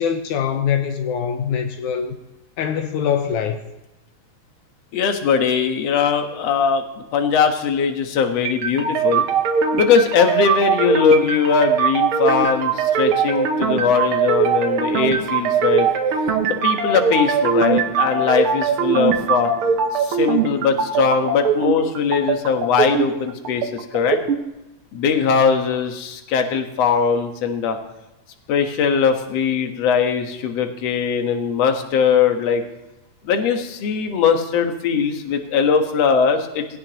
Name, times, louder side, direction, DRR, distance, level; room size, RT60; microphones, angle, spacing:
voice 1, 0.0-2.2 2.6-3.6, left 8 dB, 85° left, 2.4 m, -23 dB
voice 2, 4.9-9.3 9.7-15.9 16.5-19.5 19.9-24.2 24.9-27.8 28.5-32.6 33.2-36.7, left 6 dB, 60° left, 2.4 m, -20 dB
sound 1, 8.4-24.4, right 6 dB, 60° right, 1.6 m, -21 dB
19.5 x 16.5 x 3.0 m
omnidirectional pair, 3.4 m